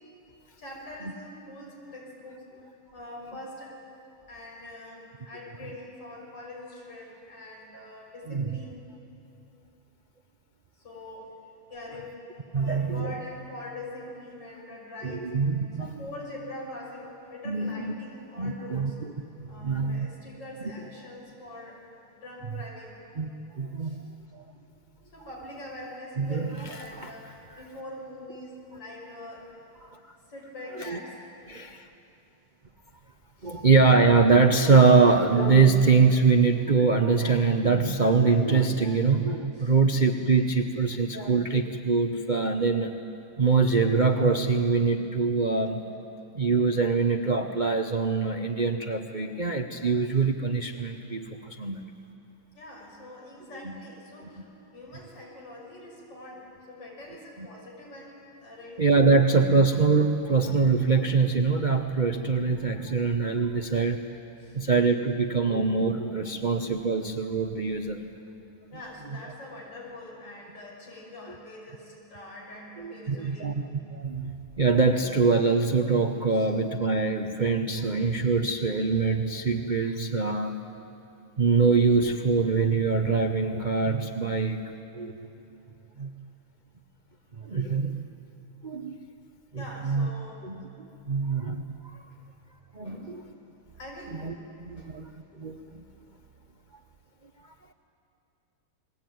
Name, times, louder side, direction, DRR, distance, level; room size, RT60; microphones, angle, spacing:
voice 1, 0.6-2.4 2.9-3.8 4.3-8.8 10.8-11.4 11.7-12.2 12.5-15.3 15.8-19.0 19.5-21.8 22.2-23.0 23.8-24.0 25.1-29.5 30.3-31.2 33.4-33.6 39.5-39.7 52.5-54.5 54.7-59.4 64.4-64.6 68.7-73.6 76.3-76.5 89.6-90.5 92.8-93.2 93.8-94.3 94.8-94.9 96.2-96.3, left 1 dB, 50° left, -2 dB, 6.5 m, -43 dB
voice 2, 12.5-13.1 15.0-15.9 17.5-17.9 18.4-18.9 19.4-20.1 23.2-23.3 23.6-24.0 24.3-24.4 26.2-27.1 29.8-30.0 30.9-31.0 31.5-31.9 33.4-42.9 43.4-45.8 46.3-51.8 57.4-57.5 58.8-64.0 64.5-68.0 72.8-73.7 73.9-80.6 81.4-84.6 84.9-85.1 86.0-86.1 87.4-88.0 88.6-89.0 89.5-90.1 90.4-91.9 92.7-93.2 94.2-94.3 94.6-95.1 95.4-95.8, right 4 dB, 80° right, 5 dB, 0.4 m, -24 dB
30.0 x 21.5 x 9.3 m, 2.8 s
omnidirectional pair, 2.4 m